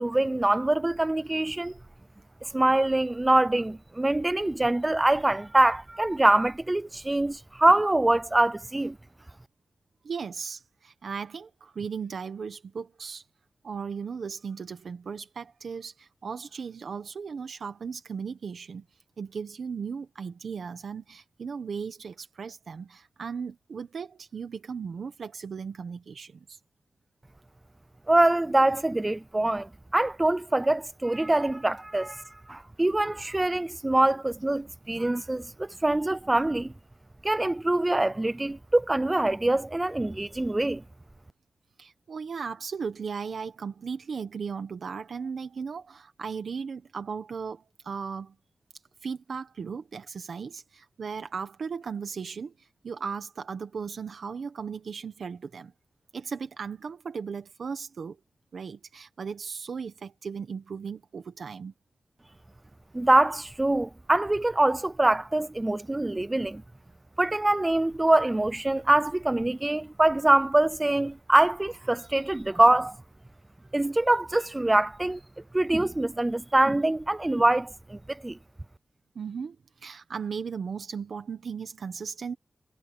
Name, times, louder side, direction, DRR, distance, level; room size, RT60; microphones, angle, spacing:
voice 1, 0.0-1.8 2.4-9.0 28.1-36.7 37.2-40.8 62.9-66.6 67.2-73.0 73.7-75.2 75.5-78.4, right 2 dB, 20° right, 0.5 m, -24 dB
voice 2, 10.0-13.2 13.6-18.8 19.2-26.6 41.8-48.3 49.0-55.7 56.1-58.2 58.5-61.7 79.1-82.3, right 6 dB, 85° right, 1.4 m, -36 dB
wide cardioid pair, 110°, 0 cm